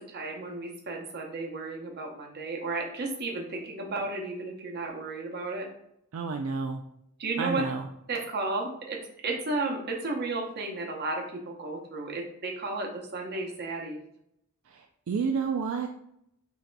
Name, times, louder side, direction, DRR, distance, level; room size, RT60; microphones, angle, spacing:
voice 1, 0.0-5.7 7.2-7.7 8.1-14.0, right 3 dB, 50° right, 1 dB, 0.8 m, -33 dB
voice 2, 6.1-6.8 7.4-7.9 14.7-15.9, right 5 dB, 70° right, 4 dB, 0.4 m, -30 dB
6.2 x 2.8 x 2.2 m, 0.75 s
head